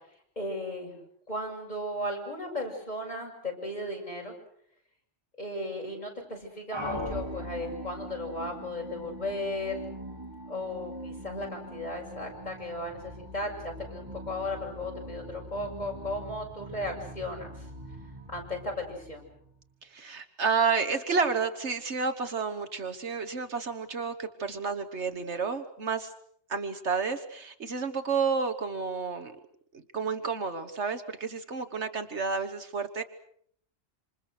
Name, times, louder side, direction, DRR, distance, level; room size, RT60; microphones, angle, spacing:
voice 1, 0.4-1.0 1.3-4.3 5.4-9.9 10.5-17.5 18.3-19.2, left 1 dB, 35° left, 0 dB, 7.2 m, -35 dB
sound 1, 6.7-19.6, equal, 20° right, 3.6 m, -42 dB
voice 2, 19.9-26.1 26.5-29.3 29.9-33.0, right 5 dB, 70° right, 9 dB, 1.7 m, -30 dB
27.0 x 27.0 x 6.5 m, 0.66 s
omnidirectional pair, 1.2 m